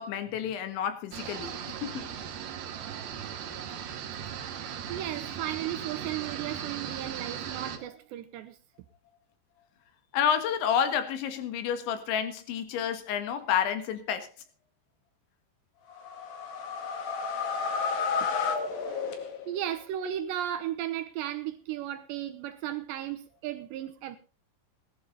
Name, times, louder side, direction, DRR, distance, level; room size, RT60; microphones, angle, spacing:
voice 1, 0.0-2.1 10.1-14.3, left 8 dB, 75° left, 3.9 m, -30 dB
sound 1, 1.1-7.8, right 8 dB, 60° right, 3.2 m, -38 dB
voice 2, 4.6-8.6 18.2-18.4 18.9-19.0 19.5-24.2, right 11 dB, 80° right, 2.9 m, -35 dB
sound 2, 15.9-19.7, left 5 dB, 55° left, 3.4 m, -31 dB
17.5 x 12.0 x 4.0 m
omnidirectional pair, 5.4 m